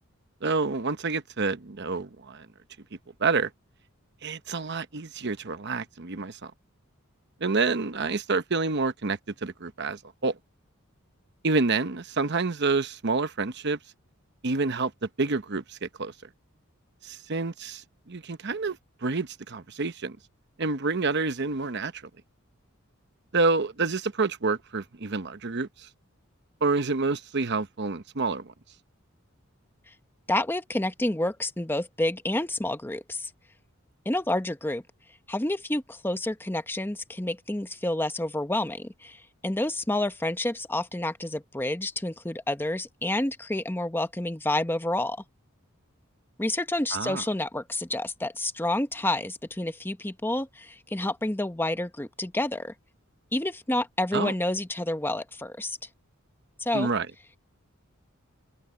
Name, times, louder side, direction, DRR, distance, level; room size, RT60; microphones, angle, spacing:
voice 1, 0.4-2.5 3.2-3.5 4.2-6.5 7.4-10.4 11.4-13.8 14.4-16.1 17.0-20.2 20.6-22.0 23.3-25.9 26.6-28.5 46.9-47.2 54.1-54.3 56.7-57.1, right 3 dB, 55° right, 0.9 m, -28 dB
voice 2, 30.3-33.3 34.0-34.8 35.3-45.2 46.4-52.7 53.3-55.8 56.6-56.9, left 1 dB, 10° left, 0.8 m, -29 dB
open air
head